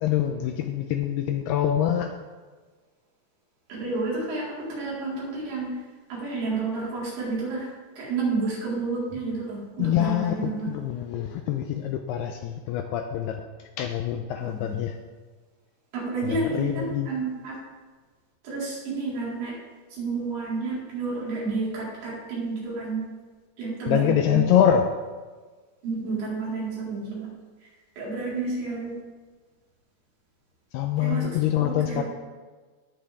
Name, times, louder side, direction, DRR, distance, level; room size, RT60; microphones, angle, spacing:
voice 1, 0.0-2.1 9.8-13.4 13.8-14.9 16.2-17.1 23.9-24.9 30.7-32.0, left 10 dB, 85° left, 5 dB, 2.3 m, -25 dB
voice 2, 3.7-5.8 6.1-7.7 8.0-10.8 14.4-14.8 15.9-17.6 18.4-19.5 19.9-23.0 23.6-24.4 25.8-27.3 28.0-29.0 31.0-32.0, right 3 dB, 85° right, -7 dB, 6.5 m, -30 dB
18.0 x 7.5 x 3.5 m, 1.4 s
omnidirectional pair, 5.2 m